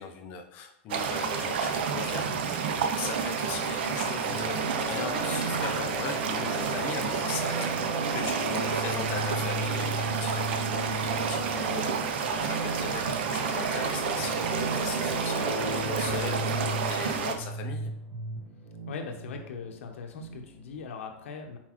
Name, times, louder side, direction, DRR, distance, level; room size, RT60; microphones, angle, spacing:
voice 1, 0.0-7.7 8.1-17.9, left 6 dB, 25° left, 5 dB, 0.4 m, -39 dB
sound 1, 0.9-17.3, right 6 dB, 55° right, 0.5 m, -30 dB
sound 2, 4.2-20.8, right 1 dB, 15° right, 0.8 m, -35 dB
voice 2, 18.9-21.6, left 5 dB, 80° left, 4 dB, 0.6 m, -40 dB
4.2 x 4.0 x 2.9 m, 0.80 s
supercardioid pair, 175°, 7 cm